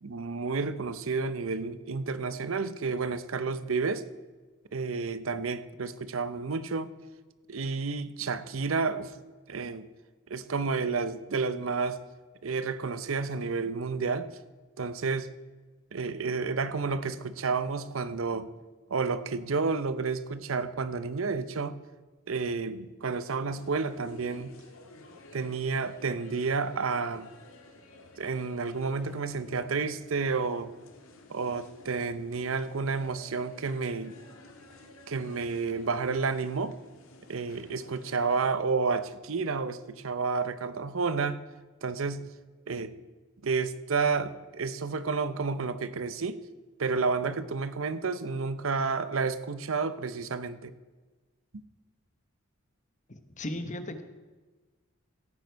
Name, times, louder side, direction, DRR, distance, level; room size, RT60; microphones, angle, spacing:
voice 1, 0.0-4.0 4.7-6.9 7.5-9.1 9.5-9.9 10.3-12.0 12.4-14.3 14.8-15.3 15.9-18.5 18.9-21.8 22.3-24.5 25.3-27.3 28.2-30.7 31.3-34.1 35.1-36.7 37.3-41.4 41.8-42.3 42.7-43.0 43.4-46.4 46.8-50.7, right 4 dB, 75° right, 13 dB, 0.7 m, -30 dB
sound 1, 23.5-38.5, left 2 dB, 85° left, 1.8 m, -53 dB
voice 2, 53.1-54.0, left 1 dB, 35° left, 8 dB, 1.0 m, -36 dB
16.0 x 9.4 x 4.6 m, 1.3 s
head